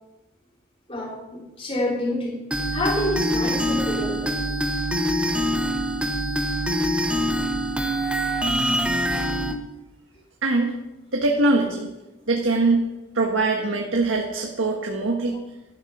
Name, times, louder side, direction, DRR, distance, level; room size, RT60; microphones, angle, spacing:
voice 1, 0.9-2.4 2.7-4.3 8.1-8.2, left 1 dB, 30° left, -3 dB, 3.7 m, -28 dB
sound 1, 2.5-9.5, equal, 5° right, 1.2 m, -24 dB
voice 2, 10.4-10.8 11.1-11.9 12.3-12.8 13.1-15.4, right 2 dB, 90° right, 0 dB, 1.7 m, -22 dB
12.5 x 12.5 x 5.6 m, 1.0 s
head